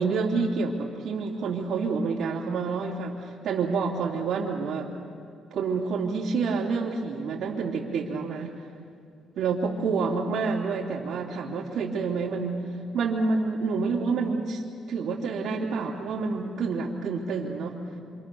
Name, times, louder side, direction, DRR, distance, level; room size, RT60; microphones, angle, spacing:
voice 1, 0.0-4.9 5.5-8.5 9.3-12.6 12.9-14.6 14.9-17.8, right 4 dB, 75° right, -7 dB, 3.1 m, -28 dB
27.0 x 26.5 x 7.1 m, 2.4 s
cardioid pair, 90°, 0 cm